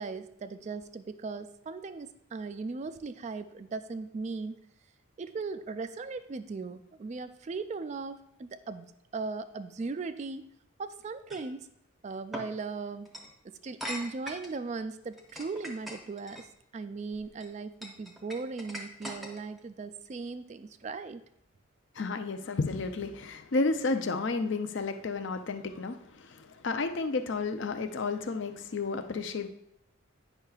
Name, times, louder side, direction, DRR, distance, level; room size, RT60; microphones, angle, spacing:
voice 1, 0.0-4.6 5.2-10.5 10.8-11.7 12.0-13.1 13.4-16.5 16.7-21.2, right 4 dB, 35° right, 11 dB, 0.3 m, -38 dB
sound 1, 11.3-11.5 12.3-12.5 13.1-13.3 13.8-14.6 15.1-16.4 17.1-17.5 17.8-19.6, equal, ahead, 0.7 m, -40 dB
voice 2, 22.0-29.5, left 3 dB, 55° left, 8 dB, 0.5 m, -32 dB
9.0 x 5.6 x 2.4 m, 0.75 s
head